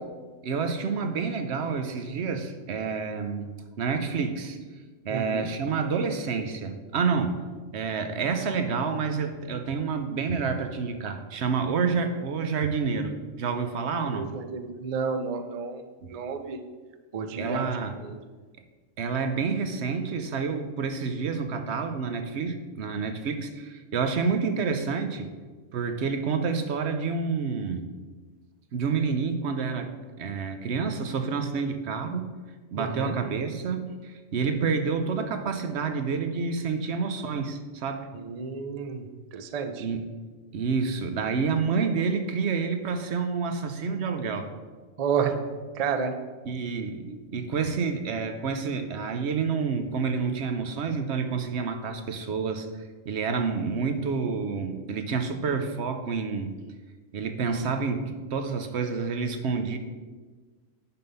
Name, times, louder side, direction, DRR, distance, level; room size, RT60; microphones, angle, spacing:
voice 1, 0.4-4.6 5.0-7.5 7.7-14.3 16.0-16.1 17.3-18.0 19.0-25.3 25.7-27.9 28.7-29.9 30.2-32.3 32.7-38.1 39.8-40.0 40.5-44.5 46.4-52.7 53.0-56.5 57.1-59.8, right 5 dB, 60° right, 7 dB, 0.9 m, -28 dB
voice 2, 5.1-5.5 14.1-15.8 16.1-16.6 17.1-17.7 18.0-18.2 32.8-33.1 38.3-39.0 39.3-39.9 45.0-45.4 45.8-46.2, right 6 dB, 80° right, 7 dB, 0.3 m, -30 dB
9.7 x 3.6 x 5.4 m, 1.4 s
omnidirectional pair, 1.5 m